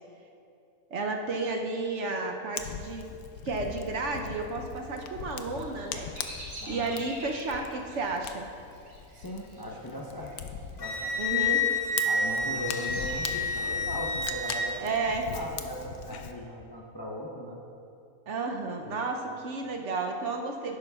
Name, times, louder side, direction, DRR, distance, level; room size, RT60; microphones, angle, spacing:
voice 1, 0.9-3.1 3.4-6.1 6.7-8.5 11.2-11.7 14.7-15.3 18.3-20.8, right 3 dB, 60° right, 3 dB, 0.9 m, -32 dB
Fire, 2.6-16.3, left 7 dB, 90° left, 1.1 m, -41 dB
Bird vocalization bird call bird song, 5.4-10.4 10.7-11.3 11.8-13.8, right 1 dB, 90° right, 2.5 m, -46 dB
voice 2, 6.6-7.0 9.1-10.3 10.8-11.2 12.1-15.0 15.3-17.6 18.8-19.1, equal, 25° left, -2 dB, 0.5 m, -39 dB
Wind instrument woodwind instrument, 10.8-14.7, left 2 dB, 60° left, 1.4 m, -29 dB
11.5 x 11.0 x 2.3 m, 2.6 s
omnidirectional pair, 1.5 m